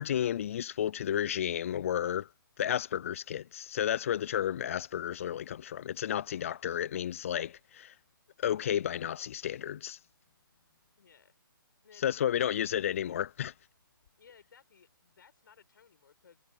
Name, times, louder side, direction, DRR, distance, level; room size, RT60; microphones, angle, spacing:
voice 1, 0.0-2.3 2.6-7.9 8.4-10.0 12.0-13.5, left 10 dB, 35° left, 0.4 m, -32 dB
voice 2, 11.0-11.3 11.8-12.4 14.2-16.4, left 7 dB, 60° left, 6.4 m, -60 dB
hypercardioid pair, 160°, 12 cm